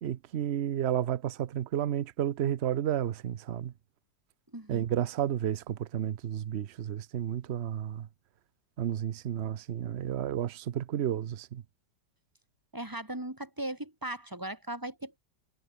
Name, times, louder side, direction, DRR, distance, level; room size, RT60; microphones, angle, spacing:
voice 1, 0.0-3.7 4.7-8.1 8.8-11.6, right 10 dB, 55° right, 0.7 m, -32 dB
voice 2, 4.5-4.9 12.7-15.2, right 1 dB, 10° right, 2.5 m, -38 dB
omnidirectional pair, 1.9 m